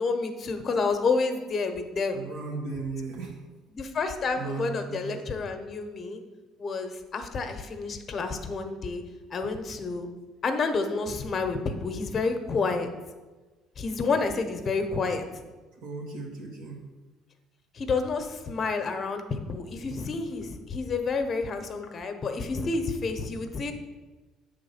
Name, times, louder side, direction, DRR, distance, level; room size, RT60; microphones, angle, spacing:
voice 1, 0.0-2.2 3.7-6.2 6.6-9.0 9.3-10.1 10.4-12.9 13.8-15.2 17.7-23.7, left 4 dB, 35° left, 7 dB, 0.9 m, -29 dB
voice 2, 2.1-3.3 4.4-5.2 15.8-16.8, right 4 dB, 85° right, -3 dB, 1.3 m, -36 dB
7.8 x 3.6 x 5.6 m, 1.2 s
cardioid pair, 110°, 0 cm